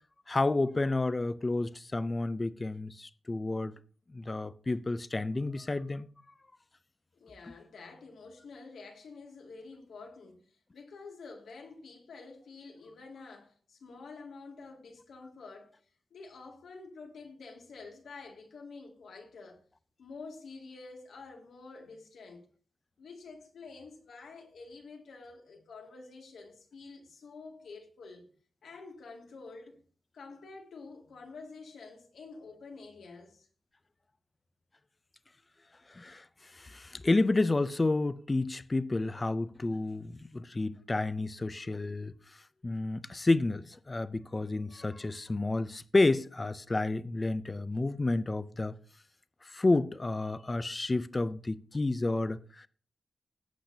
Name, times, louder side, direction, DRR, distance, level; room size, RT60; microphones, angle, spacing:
voice 1, 0.3-3.8 4.1-6.1 35.9-36.3 36.5-42.1 42.6-48.8 49.4-52.7, left 2 dB, 20° left, 0.5 m, -30 dB
voice 2, 7.2-15.8 16.1-19.6 20.0-22.5 23.0-28.2 28.6-29.8 30.1-33.5, left 4 dB, 85° left, 2.2 m, -48 dB
17.5 x 8.5 x 2.7 m
wide cardioid pair, 150°, 0 cm